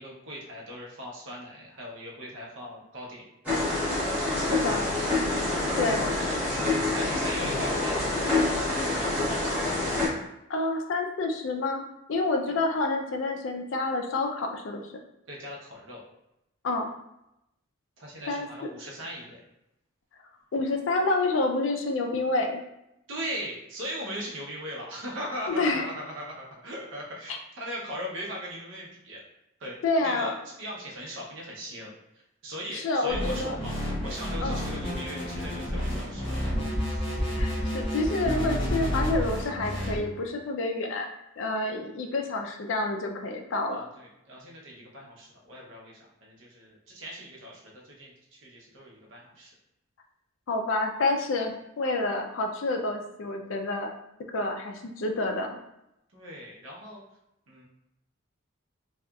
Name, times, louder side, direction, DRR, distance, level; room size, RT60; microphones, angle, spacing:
voice 1, 0.0-3.3 3.8-4.9 5.7-6.4 6.9-9.0 15.3-16.0 18.0-19.4 23.1-29.2 29.6-31.9 32.4-36.5 36.8-37.2 43.7-49.5 56.1-57.0 57.5-57.6, equal, 65° right, -3 dB, 0.7 m, -39 dB
sound 1, 3.4-10.1, left 2 dB, 10° right, 1.0 m, -27 dB
voice 2, 4.4-4.8 5.8-6.2 10.5-11.8 12.1-14.9 16.6-16.9 18.3-18.5 20.5-22.6 25.6-25.8 29.8-30.3 32.7-33.6 34.4-34.6 37.4-41.1 41.4-43.8 50.5-53.9 54.3-55.6, left 2 dB, 65° left, 4 dB, 0.4 m, -28 dB
sound 2, 33.1-40.0, equal, 25° left, 0.6 m, -30 dB
2.8 x 2.3 x 2.3 m, 0.85 s
head